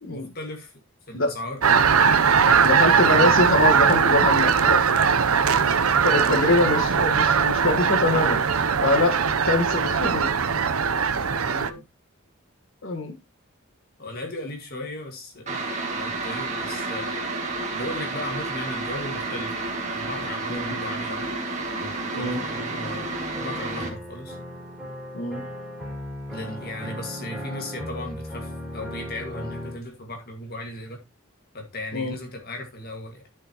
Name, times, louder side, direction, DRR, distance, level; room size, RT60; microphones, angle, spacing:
voice 1, 0.1-0.7 1.1-1.6 2.3-3.0 5.6-5.8 11.5-11.8 14.0-17.2 17.7-21.3 22.1-23.1 23.4-24.4 26.3-31.0 31.5-33.2, left 1 dB, 45° left, 1.9 m, -36 dB
sound 1, 1.6-11.7, right 6 dB, 90° right, 0.7 m, -20 dB
voice 2, 2.6-4.8 5.1-5.2 5.8-8.4 8.8-9.2 9.5-10.3 12.8-13.2 20.5-20.7 22.1-22.4 25.1-25.4 31.9-32.1, left 2 dB, 65° left, 1.6 m, -24 dB
sound 2, 15.5-23.9, right 3 dB, 35° right, 2.2 m, -30 dB
sound 3, 21.8-29.8, left 1 dB, ahead, 3.3 m, -37 dB
12.5 x 6.3 x 3.0 m
head